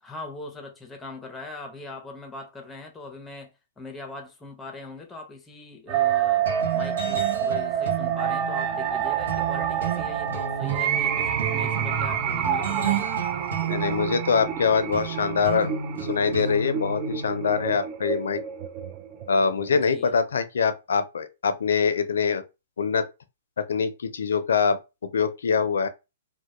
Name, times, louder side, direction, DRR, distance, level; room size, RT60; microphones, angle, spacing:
voice 1, 0.0-6.5 6.7-13.1 19.7-20.2, left 3 dB, 10° left, 0.6 m, -41 dB
sound 1, 5.9-19.9, right 9 dB, 30° right, 0.3 m, -28 dB
sound 2, 6.5-17.7, right 6 dB, 80° right, 0.8 m, -32 dB
voice 2, 13.7-18.4 19.3-22.4 22.8-23.1 23.7-24.8 25.0-25.9, left 6 dB, 80° left, 0.4 m, -24 dB
2.1 x 2.1 x 2.9 m
hypercardioid pair, 145°, 0 cm